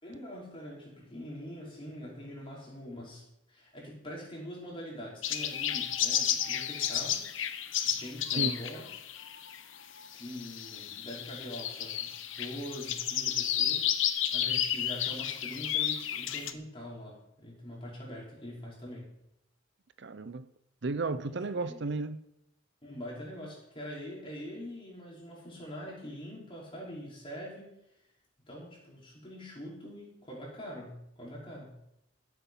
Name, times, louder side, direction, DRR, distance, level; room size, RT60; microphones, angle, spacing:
voice 1, 0.0-3.2 3.5-7.2 7.8-8.8 10.1-13.9 14.3-19.1 21.6-21.8 22.8-27.7 28.5-31.8, equal, 25° left, -4 dB, 5.2 m, -43 dB
sound 1, 5.2-16.5, left 10 dB, 75° left, 0.9 m, -32 dB
voice 2, 20.0-20.5 20.8-22.2, right 3 dB, 60° right, 12 dB, 0.7 m, -33 dB
15.0 x 8.3 x 5.7 m, 0.79 s
head